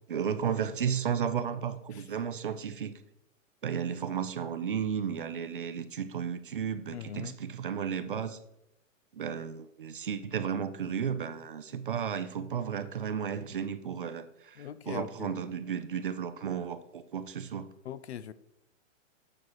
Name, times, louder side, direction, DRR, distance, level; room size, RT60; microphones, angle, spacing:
voice 1, 0.1-2.9 3.6-8.4 9.2-14.6 14.9-17.6, right 7 dB, 45° right, 0.4 m, -33 dB
voice 2, 6.9-7.4 14.6-15.3 17.8-18.3, left 9 dB, 60° left, 0.5 m, -41 dB
9.5 x 6.4 x 3.0 m
hypercardioid pair, 175°, 39 cm